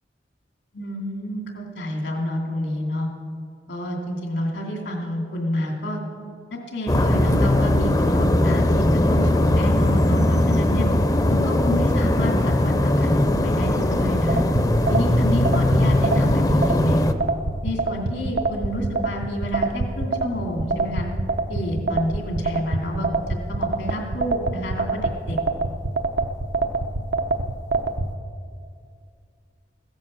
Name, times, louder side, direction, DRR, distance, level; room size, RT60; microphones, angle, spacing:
voice 1, 0.7-3.1 3.7-6.0 6.5-10.9 11.3-14.4 14.9-17.0 17.6-21.1 21.5-25.4, equal, 85° left, 1 dB, 2.7 m, -29 dB
sound 1, 6.9-17.1, left 1 dB, 20° left, 0.6 m, -19 dB
sound 2, 14.3-28.1, right 3 dB, 75° right, 0.9 m, -24 dB
16.0 x 10.5 x 7.5 m, 2.3 s
head